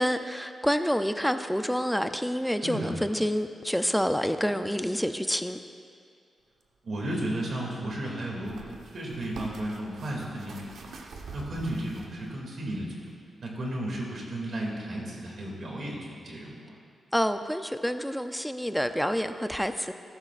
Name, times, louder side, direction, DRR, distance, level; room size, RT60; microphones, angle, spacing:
voice 1, 0.0-5.6 17.1-19.9, equal, ahead, 8 dB, 0.4 m, -28 dB
voice 2, 2.6-2.9 6.8-10.7 11.3-13.0 13.4-16.7, right 1 dB, 50° right, -2 dB, 2.4 m, -34 dB
sound 1, 6.6-6.7 8.4-12.4 13.0-13.1, right 3 dB, 80° right, 1.0 m, -44 dB
14.0 x 12.5 x 2.5 m, 2.3 s
wide cardioid pair, 150°, 0 cm